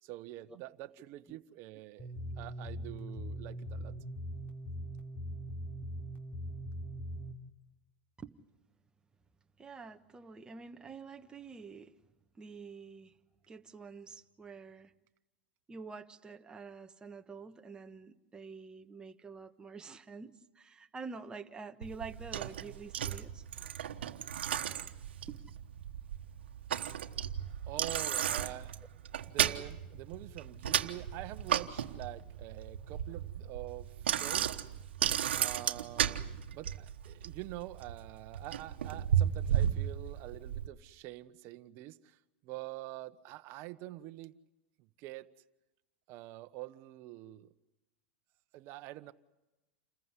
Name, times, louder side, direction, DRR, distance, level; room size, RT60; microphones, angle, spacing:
voice 1, 0.0-4.0 27.7-28.8 29.3-34.6 35.3-44.4 45.0-45.3 46.1-47.5 48.5-49.1, right 16 dB, 50° right, 1.1 m, -46 dB
sound 1, 2.0-7.3, equal, 35° left, 3.3 m, -41 dB
voice 2, 9.6-12.0 12.3-13.2 13.5-14.9 15.7-23.4, right 4 dB, 15° right, 1.3 m, -47 dB
Bicycle, 21.8-40.7, right 10 dB, 90° right, 1.2 m, -34 dB
28.5 x 15.0 x 9.7 m
supercardioid pair, 125°, 6 cm